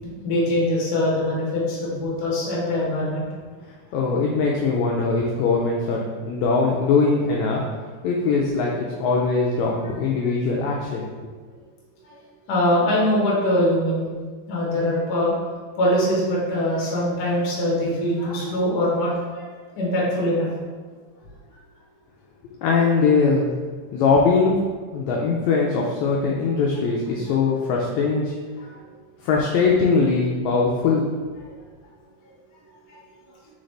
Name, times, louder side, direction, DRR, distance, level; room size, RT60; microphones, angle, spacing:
voice 1, 0.0-3.2 12.5-14.1 14.5-15.3 15.8-19.5 19.7-20.6, left 1 dB, 70° left, -5 dB, 0.9 m, -22 dB
voice 2, 3.9-7.6 8.0-11.1 22.6-23.5 23.9-24.6 24.9-28.3 29.2-31.0, left 4 dB, 90° left, -2 dB, 1.6 m, -21 dB
4.2 x 3.8 x 3.2 m, 1.5 s
omnidirectional pair, 3.7 m